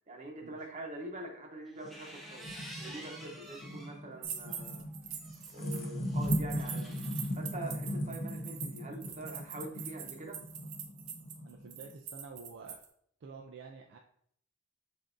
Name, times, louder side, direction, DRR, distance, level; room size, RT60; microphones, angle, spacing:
voice 1, 0.1-2.4 2.8-4.9 5.5-7.0 7.3-10.4, right 2 dB, 35° right, 1 dB, 0.9 m, -44 dB
sound 1, 1.7-4.0 4.5-7.3, equal, ahead, 0.7 m, -49 dB
sound 2, 1.8-11.9, equal, 40° left, 0.7 m, -38 dB
sound 3, 4.2-5.9 6.2-12.8, right 8 dB, 90° right, 0.8 m, -43 dB
voice 2, 11.4-12.8 13.2-14.0, right 4 dB, 60° right, 2 dB, 0.4 m, -49 dB
7.3 x 2.6 x 2.5 m, 0.66 s
head